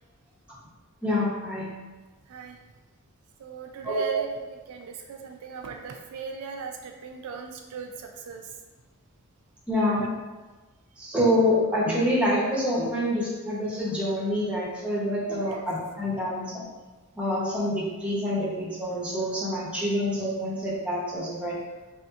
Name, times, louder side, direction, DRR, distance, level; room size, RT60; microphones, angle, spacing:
voice 1, 1.0-1.7 3.8-4.0 9.7-10.1 11.0-16.5 17.2-21.6, left 1 dB, 5° right, -7 dB, 0.7 m, -26 dB
voice 2, 3.4-8.5 10.0-10.1 15.4-15.6, right 6 dB, 80° right, 3 dB, 0.3 m, -36 dB
3.5 x 2.7 x 2.3 m, 1.2 s
head